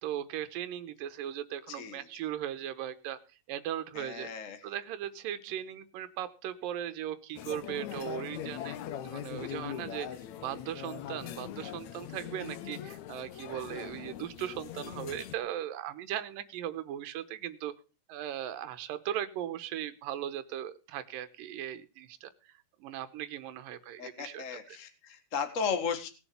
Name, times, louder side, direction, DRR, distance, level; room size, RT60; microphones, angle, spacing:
voice 1, 0.0-3.2 3.5-4.3 4.6-8.8 9.0-10.1 10.4-17.7 18.1-22.5 22.8-24.8, right 11 dB, 90° right, 11 dB, 2.6 m, -38 dB
voice 2, 1.7-2.0 3.9-4.6 24.0-26.1, left 6 dB, 40° left, 7 dB, 1.1 m, -35 dB
sound 1, 7.4-15.4, left 10 dB, 65° left, 2.2 m, -41 dB
19.0 x 7.3 x 6.9 m, 0.35 s
omnidirectional pair, 3.9 m